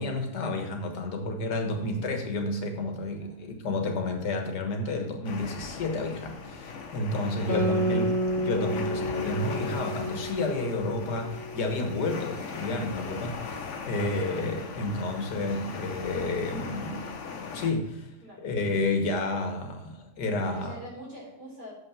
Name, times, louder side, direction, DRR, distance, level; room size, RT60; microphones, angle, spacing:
voice 1, 0.0-8.1 8.4-17.0 17.5-18.0 18.4-20.8, left 2 dB, 90° left, 4 dB, 1.9 m, -30 dB
sound 1, 5.2-17.7, left 5 dB, 50° left, 1.2 m, -39 dB
voice 2, 7.3-8.1 18.2-18.5 20.4-21.7, equal, 70° right, -4 dB, 4.3 m, -45 dB
Guitar, 7.5-12.4, equal, 30° left, 2.3 m, -31 dB
7.1 x 5.6 x 7.1 m, 0.87 s
omnidirectional pair, 1.7 m